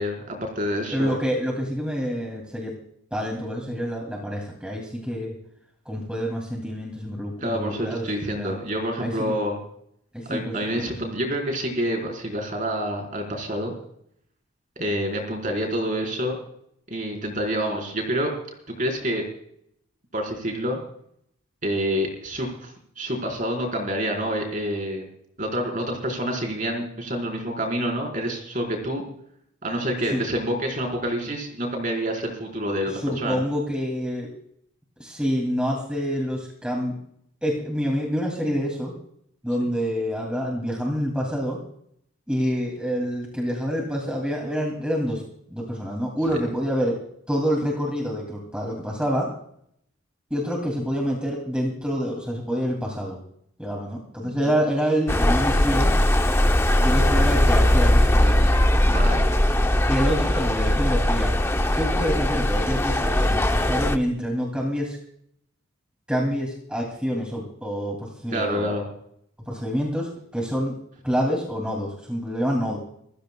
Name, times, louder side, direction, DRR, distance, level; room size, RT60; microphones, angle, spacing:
voice 1, 0.0-1.2 7.4-9.6 10.3-13.7 14.8-16.4 16.9-18.3 18.7-19.2 20.1-20.8 21.6-25.0 25.4-29.0 29.6-33.5 39.6-39.7 46.3-46.4 54.2-54.3 58.8-59.3 68.3-68.9, equal, 35° right, 2 dB, 4.4 m, -27 dB
voice 2, 0.9-2.7 3.1-5.4 5.9-8.5 9.0-9.3 10.1-10.9 30.1-30.2 32.9-34.3 35.0-36.9 37.4-38.9 39.4-41.6 42.3-45.2 45.5-47.0 47.3-49.3 50.3-53.2 53.6-56.0 56.8-58.5 59.9-61.4 61.8-65.0 66.1-68.7 69.5-70.8 71.0-72.8, equal, 5° right, -1 dB, 2.6 m, -27 dB
sound 1, 55.1-64.0, left 1 dB, 10° left, 0.6 m, -20 dB
28.5 x 15.0 x 2.3 m, 0.69 s
head